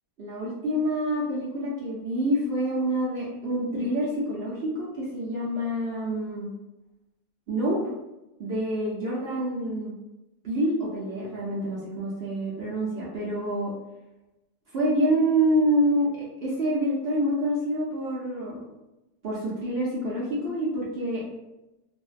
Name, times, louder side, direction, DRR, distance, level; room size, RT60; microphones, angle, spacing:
voice 1, 0.2-6.5 7.5-7.8 8.4-9.9 10.4-13.7 14.7-16.1 16.4-18.6 19.2-21.2, right 1 dB, 65° right, -5 dB, 0.6 m, -27 dB
2.5 x 2.1 x 2.4 m, 0.97 s
omnidirectional pair, 1.6 m